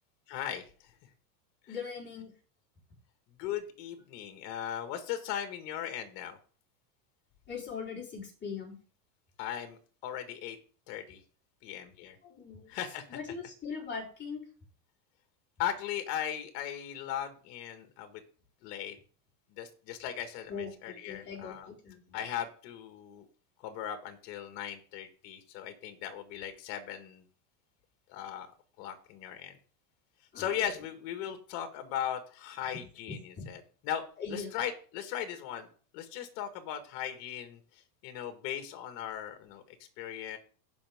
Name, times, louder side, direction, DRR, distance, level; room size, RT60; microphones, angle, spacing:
voice 1, 0.3-0.9 1.7-1.9 3.4-6.4 9.4-10.6 10.9-11.2 11.6-12.2 12.7-13.2 15.6-18.2 18.6-19.0 19.5-21.7 22.1-23.3 23.6-27.2 28.1-28.5 28.8-29.6 30.4-34.0 34.3-35.7 35.9-39.6 40.0-40.4, left 10 dB, 55° left, 7 dB, 1.9 m, -38 dB
voice 2, 1.7-2.3 7.5-8.8 12.2-12.7 13.1-14.5 20.5-22.2 30.3-30.5 33.4-33.5 34.2-34.5, left 5 dB, 20° left, -3 dB, 4.4 m, -40 dB
16.0 x 5.6 x 3.6 m, 0.40 s
supercardioid pair, 125°, 48 cm